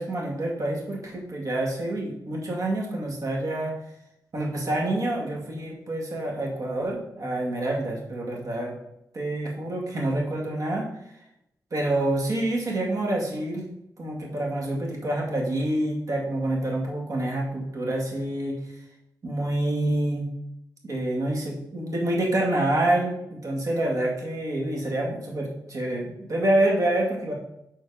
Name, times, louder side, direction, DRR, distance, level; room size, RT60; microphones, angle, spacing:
voice 1, 0.0-3.7 4.3-8.8 9.1-10.9 11.7-13.7 14.0-18.6 19.2-20.3 20.8-27.3, right 1 dB, 55° right, -1 dB, 2.1 m, -27 dB
7.1 x 4.4 x 4.9 m, 0.81 s
wide cardioid pair, 100°, 7 cm